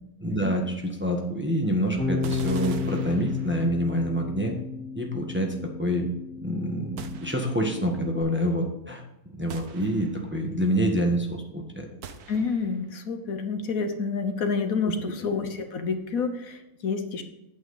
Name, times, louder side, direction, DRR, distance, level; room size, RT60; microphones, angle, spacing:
voice 1, 0.2-4.5 4.9-6.1 6.4-9.0 9.3-11.9, equal, 10° right, 1 dB, 1.2 m, -27 dB
Bass guitar, 2.0-8.2, left 4 dB, 10° left, 3.7 m, -33 dB
sound 1, 2.2-3.9 7.0-7.8 9.5-10.4 12.0-12.9, right 6 dB, 80° right, 1.4 m, -43 dB
voice 2, 12.3-17.2, left 5 dB, 70° left, 7 dB, 1.4 m, -29 dB
9.0 x 8.5 x 4.0 m, 0.90 s
omnidirectional pair, 1.6 m